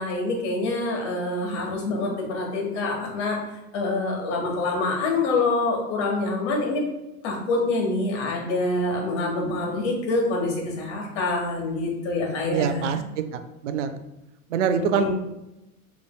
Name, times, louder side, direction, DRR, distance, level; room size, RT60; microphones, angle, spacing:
voice 1, 0.0-3.4 3.7-6.8 7.2-13.0 14.7-15.1, left 2 dB, 50° left, 0 dB, 1.5 m, -26 dB
voice 2, 12.5-13.9 14.5-15.1, right 7 dB, 55° right, 10 dB, 0.6 m, -25 dB
5.9 x 3.2 x 2.3 m, 0.93 s
figure-of-eight pair, 90°, 43 cm